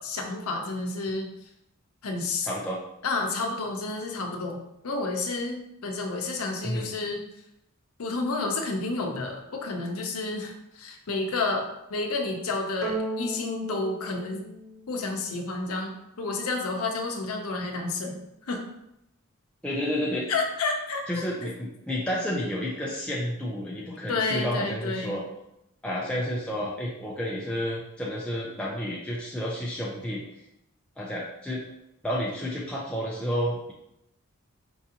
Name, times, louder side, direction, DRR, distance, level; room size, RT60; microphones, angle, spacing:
voice 1, 0.0-1.3 2.0-2.5 3.0-4.6 4.8-7.2 8.0-14.5 14.9-18.2 18.5-18.6 20.3-21.5 24.1-25.2, left 3 dB, 80° left, 2 dB, 0.6 m, -30 dB
voice 2, 2.4-2.8 6.6-6.9 19.6-20.3 21.1-25.2 25.8-30.2 31.0-31.7 32.0-33.7, equal, 5° left, -5 dB, 0.4 m, -30 dB
sound 1, 12.8-15.4, right 2 dB, 65° right, 0.8 m, -35 dB
4.6 x 2.5 x 2.8 m, 0.83 s
head